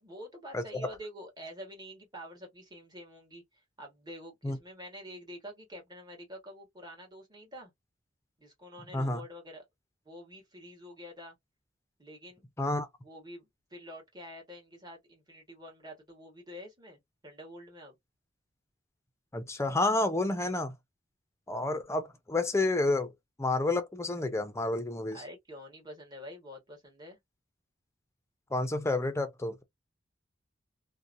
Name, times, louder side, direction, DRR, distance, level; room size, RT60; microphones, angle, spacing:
voice 1, 0.0-7.7 8.4-9.6 10.0-11.3 12.0-12.4 13.0-18.0 25.1-27.2, equal, 20° right, 1.3 m, -47 dB
voice 2, 12.6-12.9 19.3-20.7 21.5-23.1 23.4-25.2 28.5-29.6, left 2 dB, 15° left, 0.5 m, -29 dB
2.8 x 2.1 x 2.4 m
head